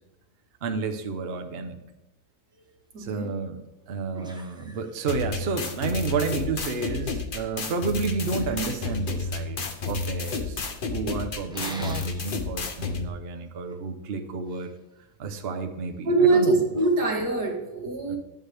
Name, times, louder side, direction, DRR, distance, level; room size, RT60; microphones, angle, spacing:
voice 1, 0.6-1.8 3.0-3.6 3.9-10.6 10.9-14.7 15.2-16.6 18.1-18.2, right 4 dB, 45° right, 6 dB, 0.9 m, -31 dB
voice 2, 2.9-3.3 16.1-18.2, right 3 dB, 75° right, 1 dB, 2.1 m, -23 dB
sound 1, 3.5-3.6 4.1-5.5 5.8-6.3 6.5-7.1 8.3-9.6 11.5-12.3 12.8-13.0 13.3-14.7 16.7-17.1, equal, 5° right, 0.7 m, -44 dB
sound 2, 5.1-13.1, left 4 dB, 40° left, 0.8 m, -31 dB
11.0 x 8.1 x 3.4 m, 0.97 s
omnidirectional pair, 1.7 m